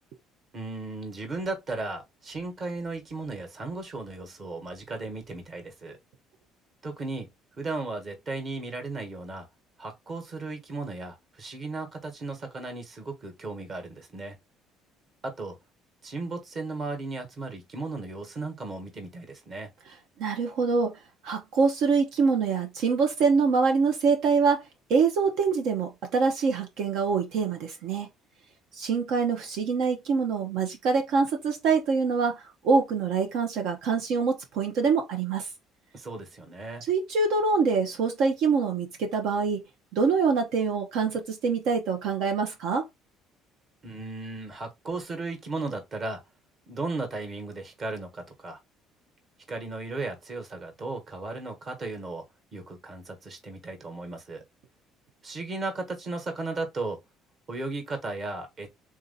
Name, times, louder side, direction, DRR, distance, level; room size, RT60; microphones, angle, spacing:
voice 1, 0.5-6.0 6.8-7.3 7.6-9.5 9.8-14.4 15.2-15.6 16.0-19.7 35.9-36.8 43.8-46.2 46.7-48.6 49.5-52.2 52.5-54.4 55.2-57.0 57.5-58.7, right 3 dB, 35° right, 1.4 m, -35 dB
voice 2, 20.2-21.0 21.2-24.6 24.9-28.1 28.7-35.5 36.9-39.6 39.9-42.9, right 5 dB, 70° right, 0.8 m, -25 dB
3.8 x 2.8 x 3.9 m
cardioid pair, 140°, 0 cm